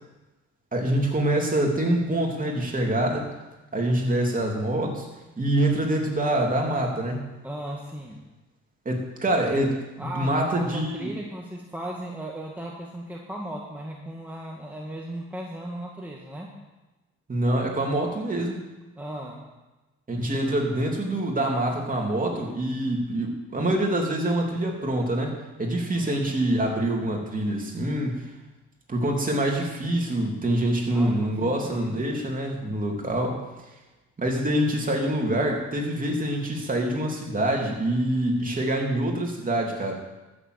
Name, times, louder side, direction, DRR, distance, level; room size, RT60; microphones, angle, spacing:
voice 1, 0.7-3.3 3.7-5.1 5.4-7.3 8.8-11.1 17.3-18.6 20.1-25.3 25.6-28.2 28.9-33.4 34.2-39.9, right 1 dB, 25° right, 0 dB, 3.1 m, -25 dB
voice 2, 7.4-8.2 10.0-16.5 19.0-19.4 25.9-26.2 30.9-32.1, right 1 dB, 5° right, -2 dB, 1.8 m, -37 dB
13.0 x 7.2 x 8.1 m, 1.1 s
cardioid pair, 90°, 30 cm